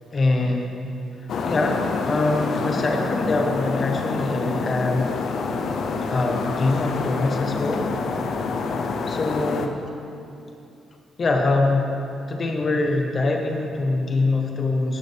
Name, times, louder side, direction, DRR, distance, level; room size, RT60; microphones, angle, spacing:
voice 1, 0.1-0.7 1.2-5.2 6.0-7.9 9.1-9.7 11.2-11.9 12.3-15.0, left 2 dB, 25° left, 2 dB, 1.0 m, -24 dB
sound 1, 1.3-9.7, left 4 dB, 50° left, 0.6 m, -27 dB
14.0 x 11.0 x 3.4 m, 2.7 s
cardioid pair, 180°, 0 cm